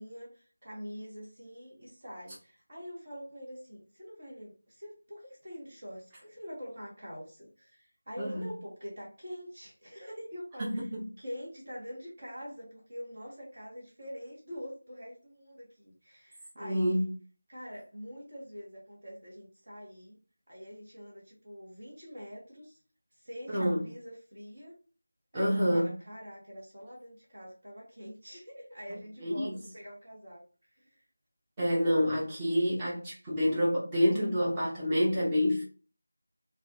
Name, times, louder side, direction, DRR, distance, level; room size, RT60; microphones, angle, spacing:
voice 1, 0.0-10.8 11.2-17.0 17.5-20.2 20.5-22.8 23.2-24.7 25.3-30.4 30.7-30.9, equal, 40° right, 0.9 m, -45 dB
voice 2, 8.2-8.5 10.6-11.0 16.6-17.1 23.5-23.8 25.3-25.9 29.2-29.6 31.6-35.6, equal, 15° right, 0.7 m, -28 dB
2.3 x 2.1 x 2.6 m
figure-of-eight pair, 170°, 0 cm